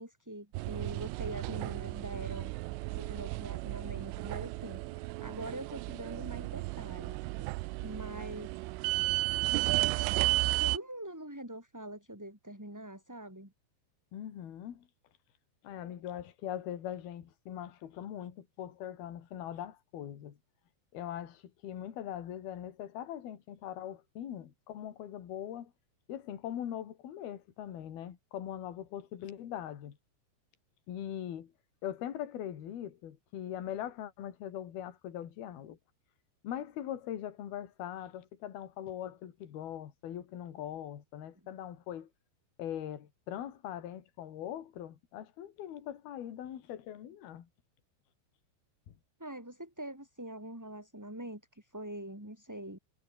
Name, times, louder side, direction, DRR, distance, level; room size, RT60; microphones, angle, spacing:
voice 1, 0.0-2.5 2.9-7.5 7.8-8.5 10.6-13.5 49.2-52.8, right 1 dB, 5° right, 6.2 m, -44 dB
sound 1, 0.5-10.8, right 22 dB, 90° right, 3.2 m, -33 dB
voice 2, 14.1-14.9 15.6-20.4 20.9-25.7 26.1-30.0 30.9-31.5 31.8-35.8 36.4-42.1 42.6-47.5 48.9-49.0, left 10 dB, 55° left, 4.1 m, -41 dB
omnidirectional pair, 5.6 m